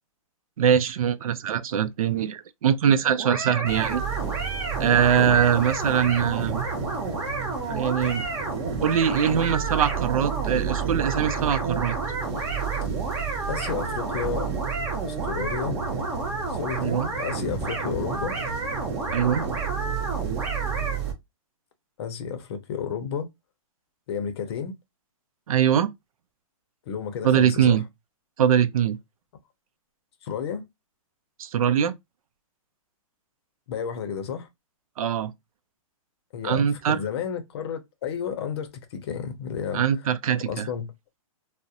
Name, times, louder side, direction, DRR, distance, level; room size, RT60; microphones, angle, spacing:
voice 1, 0.6-4.0 4.8-6.6 7.7-8.2 8.8-12.0 16.8-17.1 19.1-19.5 25.5-25.9 27.2-27.8 28.4-29.0 31.4-31.9 35.0-35.3 36.4-37.0 39.7-40.7, right 8 dB, 90° right, 0.4 m, -22 dB
sound 1, 3.2-21.0, right 2 dB, 10° right, 0.5 m, -31 dB
sound 2, 3.6-21.1, right 9 dB, 50° right, 0.8 m, -33 dB
voice 2, 13.5-14.5 15.1-15.8 16.5-18.4 22.0-23.3 24.1-24.8 26.9-27.8 30.2-30.7 33.7-34.5 36.3-39.8 40.3-40.9, left 7 dB, 50° left, 0.6 m, -32 dB
2.4 x 2.0 x 2.7 m
hypercardioid pair, 160°, 18 cm